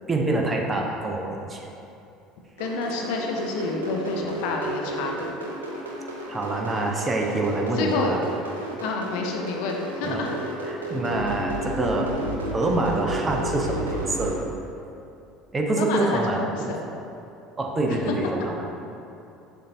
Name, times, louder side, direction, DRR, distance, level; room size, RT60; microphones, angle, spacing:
voice 1, 0.1-1.7 6.3-8.2 10.0-10.3 10.6-12.2 12.5-14.4 15.5-16.7 17.6-18.7, right 2 dB, 25° right, 1 dB, 0.6 m, -26 dB
voice 2, 2.6-5.4 7.8-8.2 8.8-10.3 15.8-16.8, left 4 dB, 65° left, 1 dB, 0.5 m, -29 dB
sound 1, 2.6-14.3, right 1 dB, 80° right, 0.4 m, -32 dB
6.6 x 2.7 x 2.6 m, 2.8 s
figure-of-eight pair, 65°, 0 cm